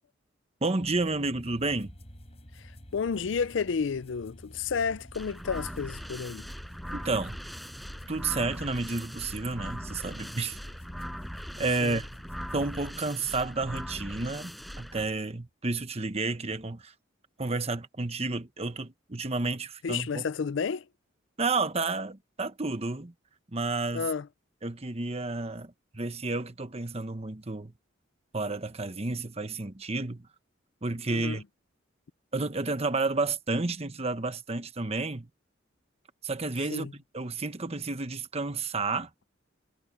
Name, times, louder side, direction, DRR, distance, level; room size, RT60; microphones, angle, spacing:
voice 1, 0.6-1.9 6.9-7.4 8.1-10.6 11.6-12.1 12.5-16.9 17.4-20.2 21.4-23.1 23.5-24.1 24.6-27.7 28.3-30.3 30.8-31.4 32.3-35.3 36.2-36.9 37.1-39.1, right 3 dB, 30° right, 1.1 m, -31 dB
sound 1, 0.8-12.8, equal, 30° left, 6.8 m, -50 dB
voice 2, 2.6-6.5 11.8-12.0 19.8-20.9 23.9-24.3 31.1-31.4 36.7-36.9, left 5 dB, 70° left, 0.5 m, -31 dB
sound 2, 5.1-15.0, equal, ahead, 8.0 m, -40 dB
head